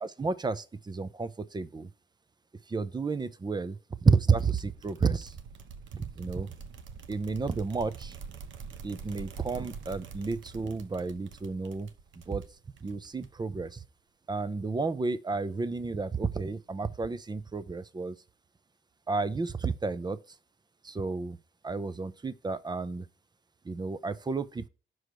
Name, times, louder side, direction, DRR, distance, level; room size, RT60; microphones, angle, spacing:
voice 1, 0.0-1.9 2.7-5.4 5.9-6.5 7.1-8.2 8.8-11.9 12.3-12.4 12.8-13.8 14.3-18.2 19.1-20.2 20.8-21.4 21.6-23.1 23.6-24.7, right 4 dB, 20° right, 0.7 m, -31 dB
sound 1, 4.3-13.5, right 6 dB, 70° right, 1.0 m, -45 dB
6.3 x 5.0 x 4.6 m
cardioid pair, 90°, 20 cm